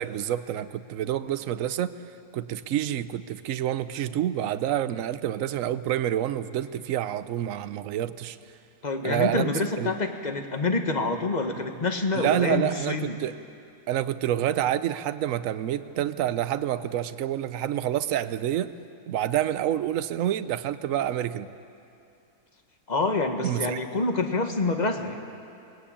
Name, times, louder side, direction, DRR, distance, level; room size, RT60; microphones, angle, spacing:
voice 1, 0.0-1.9 2.3-8.4 9.0-9.5 9.8-9.9 12.1-13.4 13.9-18.7 19.1-21.5 23.4-23.8, right 11 dB, 65° right, 13 dB, 1.0 m, -28 dB
voice 2, 8.8-13.2 22.9-25.2, left 3 dB, 30° left, 5 dB, 1.5 m, -27 dB
22.5 x 20.0 x 8.7 m, 2.6 s
omnidirectional pair, 1.6 m